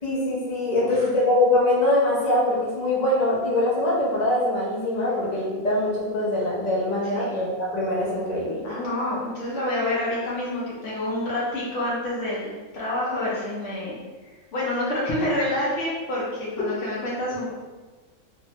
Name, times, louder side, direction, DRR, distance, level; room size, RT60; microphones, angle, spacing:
voice 1, 0.0-8.6, left 1 dB, 40° left, -6 dB, 0.6 m, -23 dB
voice 2, 8.6-14.0 14.5-17.5, left 1 dB, 60° left, -6 dB, 0.9 m, -28 dB
3.3 x 2.0 x 2.7 m, 1.3 s
omnidirectional pair, 1.6 m